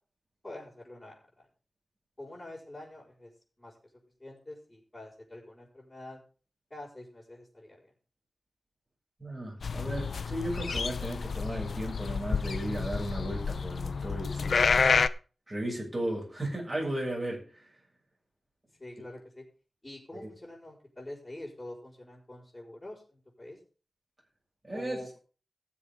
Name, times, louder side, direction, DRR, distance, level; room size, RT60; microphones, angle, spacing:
voice 1, 0.4-1.5 2.2-3.3 3.6-3.8 4.2-6.2 6.7-7.9 18.8-19.4 19.8-23.6 24.7-25.2, left 1 dB, 20° left, -8 dB, 5.0 m, -46 dB
voice 2, 9.2-14.7 15.5-17.6 20.1-20.3 24.6-25.1, right 1 dB, 20° right, -3 dB, 6.8 m, -35 dB
sound 1, 9.6-15.1, left 5 dB, 70° left, 0.6 m, -29 dB
19.0 x 7.3 x 3.7 m, 0.37 s
wide cardioid pair, 130°, 0 cm